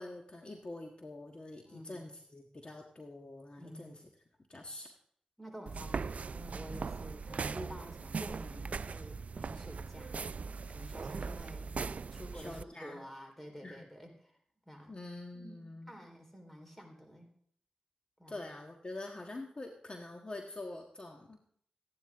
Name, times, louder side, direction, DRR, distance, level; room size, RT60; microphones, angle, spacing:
voice 1, 0.0-4.1 4.5-4.9 12.3-13.0 13.6-13.9 14.9-15.9 18.3-21.4, left 2 dB, 45° left, 1 dB, 1.5 m, -45 dB
voice 2, 1.6-2.1 3.6-3.9 5.4-10.3 10.7-11.8 12.1-14.4 14.7-15.0 15.3-17.3 18.2-18.4, equal, 10° left, 3 dB, 4.0 m, -50 dB
sound 1, 5.7-12.6, right 5 dB, 65° right, 0.4 m, -40 dB
14.5 x 10.5 x 3.6 m, 0.63 s
cardioid pair, 45°, 3 cm